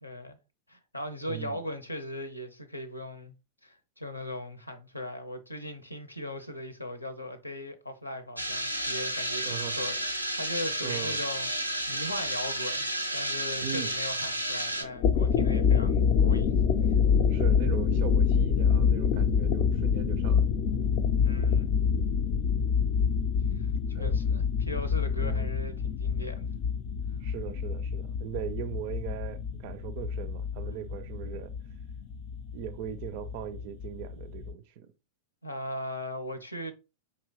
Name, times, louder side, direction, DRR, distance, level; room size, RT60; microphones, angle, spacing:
voice 1, 0.0-0.4 0.7-3.3 3.6-16.5 16.9-17.0 21.1-21.7 23.5-23.7 24.0-26.5 35.4-36.7, left 1 dB, 85° left, 0.6 m, -39 dB
voice 2, 1.3-1.6 9.4-9.8 10.8-11.2 13.6-13.9 17.3-20.4 23.9-24.2 25.2-25.5 27.2-31.5 32.5-34.9, right 10 dB, 50° right, 0.4 m, -39 dB
sound 1, 8.4-14.8, right 1 dB, 90° right, 0.6 m, -32 dB
sound 2, 14.8-34.5, left 6 dB, 45° left, 0.4 m, -26 dB
5.2 x 2.9 x 2.9 m
figure-of-eight pair, 90°, 0 cm